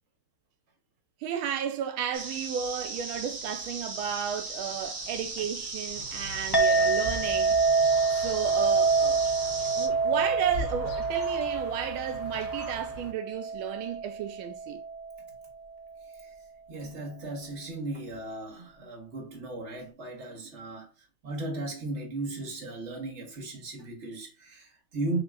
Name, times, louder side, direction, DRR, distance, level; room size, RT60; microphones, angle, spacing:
voice 1, 1.2-7.6 8.1-9.3 9.8-14.8, right 8 dB, 85° right, 1.4 m, -33 dB
sound 1, 2.1-9.9, right 3 dB, 65° right, 2.3 m, -37 dB
sound 2, 5.9-13.1, equal, 50° left, 1.8 m, -42 dB
Chink clink, 6.5-15.2, right 4 dB, 20° left, 0.6 m, -27 dB
voice 2, 16.7-20.9 21.2-25.2, right 2 dB, 35° right, 1.7 m, -36 dB
7.3 x 2.9 x 2.2 m
omnidirectional pair, 2.3 m